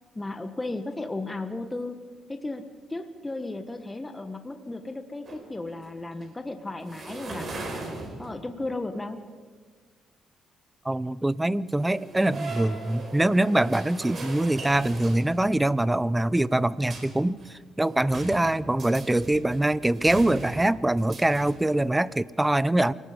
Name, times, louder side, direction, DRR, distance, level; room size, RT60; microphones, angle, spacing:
voice 1, 0.1-2.0 2.3-2.6 2.9-7.5 8.2-9.2, left 2 dB, 15° left, 7 dB, 1.3 m, -34 dB
sound 1, 5.3-5.9 6.2-6.3 6.9-8.6 11.8-15.7 16.9-17.5 17.9-21.8, right 3 dB, 45° right, 4.7 m, -39 dB
voice 2, 10.8-22.9, right 1 dB, 10° right, 19 dB, 0.6 m, -24 dB
28.0 x 18.5 x 5.1 m, 1.5 s
cardioid pair, 90°, 0 cm